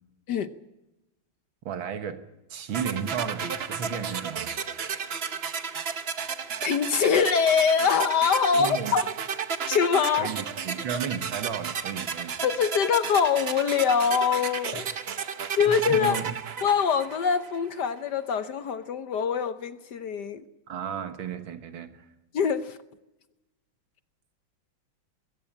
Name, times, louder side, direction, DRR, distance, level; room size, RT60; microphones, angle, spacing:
voice 1, 1.7-2.2 2.5-4.6 8.6-9.0 10.2-12.4 15.7-16.3 20.7-22.0, right 7 dB, 80° right, 2.2 m, -34 dB
sound 1, 2.7-17.7, right 6 dB, 55° right, 0.7 m, -33 dB
voice 2, 6.6-9.0 9.7-10.3 12.4-14.9 15.6-16.2 16.6-20.4 22.3-22.8, left 6 dB, 65° left, 1.4 m, -24 dB
22.0 x 16.0 x 8.7 m
omnidirectional pair, 2.2 m